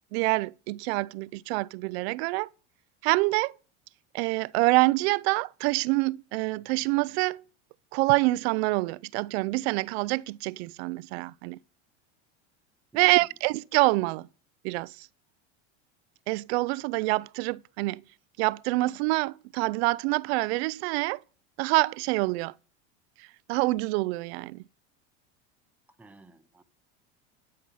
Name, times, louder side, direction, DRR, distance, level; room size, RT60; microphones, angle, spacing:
voice 1, 0.1-2.5 3.0-3.5 4.1-7.4 7.9-11.6 12.9-14.3 14.6-15.1 16.3-18.0 18.4-21.2 21.6-22.5 23.2-24.6, right 23 dB, 70° right, 0.5 m, -26 dB
voice 2, 12.9-13.3 25.9-26.6, right 2 dB, 5° right, 0.7 m, -53 dB
12.0 x 5.6 x 6.3 m
supercardioid pair, 115°, 34 cm